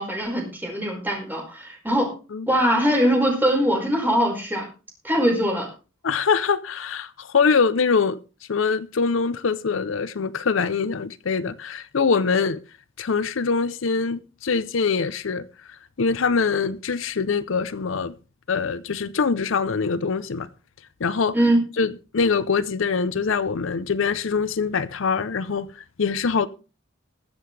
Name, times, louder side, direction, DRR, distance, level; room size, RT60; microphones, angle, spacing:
voice 1, 0.0-2.1 2.5-4.7 5.0-5.7 21.3-21.6, equal, 10° right, 5.1 m, -22 dB
voice 2, 6.0-8.2 8.5-12.6 13.0-15.4 16.0-18.1 18.5-20.5 21.0-21.3 21.8-26.5, left 5 dB, 75° left, 0.6 m, -23 dB
22.0 x 7.6 x 3.3 m
head